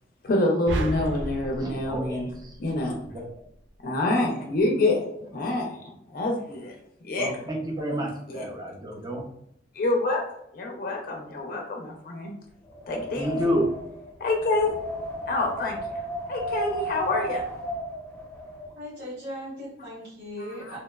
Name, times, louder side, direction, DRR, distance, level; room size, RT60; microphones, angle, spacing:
voice 1, 0.2-2.3 2.6-3.0 3.8-6.7 7.0-7.3 8.3-8.4 9.7-10.2 10.5-12.3 12.9-13.4 14.2-14.8 15.3-16.0 16.3-17.4 20.4-20.7, left 2 dB, 55° left, 1 dB, 0.4 m, -27 dB
sound 1, 0.7-3.1, right 1 dB, 80° right, 0.4 m, -33 dB
voice 2, 1.6-2.5 3.0-3.2 7.2-9.3 13.2-13.7, equal, 20° right, 0 dB, 0.5 m, -30 dB
Wind, 12.7-18.7, equal, 15° left, 0.7 m, -34 dB
voice 3, 18.7-20.8, equal, 60° right, -10 dB, 1.1 m, -38 dB
2.8 x 2.0 x 2.2 m, 0.75 s
head